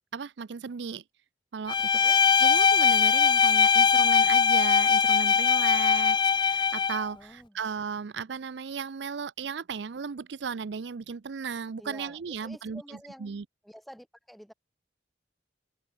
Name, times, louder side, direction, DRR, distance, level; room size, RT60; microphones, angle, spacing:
voice 1, 0.1-1.0 1.5-13.4, right 6 dB, 75° right, 0.5 m, -36 dB
Bowed string instrument, 1.7-7.0, left 6 dB, 25° left, 0.4 m, -21 dB
voice 2, 7.1-7.6 11.8-13.3 13.6-14.5, equal, ahead, 7.8 m, -48 dB
head